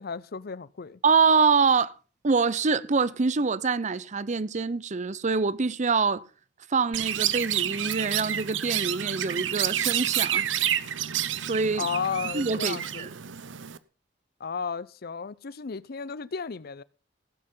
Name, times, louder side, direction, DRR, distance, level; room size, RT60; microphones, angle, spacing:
voice 1, 0.0-1.0 11.8-13.1 14.4-16.8, left 6 dB, 55° left, 0.6 m, -33 dB
voice 2, 1.0-1.9 2.2-6.2 6.7-10.4 11.4-11.8 12.3-13.1, right 5 dB, 40° right, 0.6 m, -25 dB
Chirp tweet, 6.9-13.8, right 11 dB, 80° right, 0.8 m, -29 dB
16.0 x 7.8 x 5.4 m
head